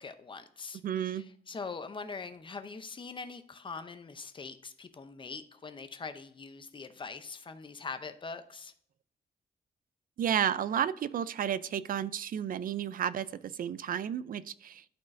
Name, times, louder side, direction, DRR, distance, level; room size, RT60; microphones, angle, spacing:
voice 1, 0.0-8.7, left 4 dB, 25° left, 0.6 m, -43 dB
voice 2, 0.8-1.3 10.2-14.9, right 9 dB, 50° right, 0.4 m, -32 dB
12.0 x 4.4 x 2.6 m
wide cardioid pair, 160°, 18 cm